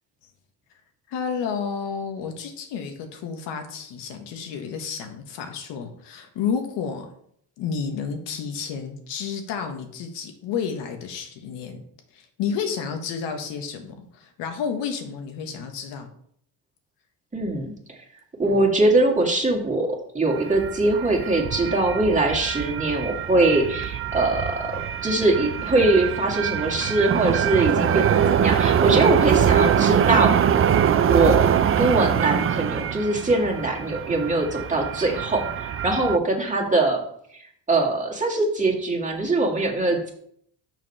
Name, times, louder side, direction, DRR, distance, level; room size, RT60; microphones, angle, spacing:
voice 1, 1.1-7.1 7.6-11.8 12.1-16.1, left 6 dB, 85° left, 5 dB, 1.5 m, -31 dB
voice 2, 17.3-18.0 18.4-19.9 20.1-30.3 31.1-31.5 31.8-37.0 37.3-40.1, right 2 dB, 20° right, -1 dB, 2.0 m, -22 dB
sound 1, 20.3-36.2, right 8 dB, 35° right, 0.5 m, -23 dB
6.3 x 5.2 x 5.5 m, 0.67 s
cardioid pair, 95°, 41 cm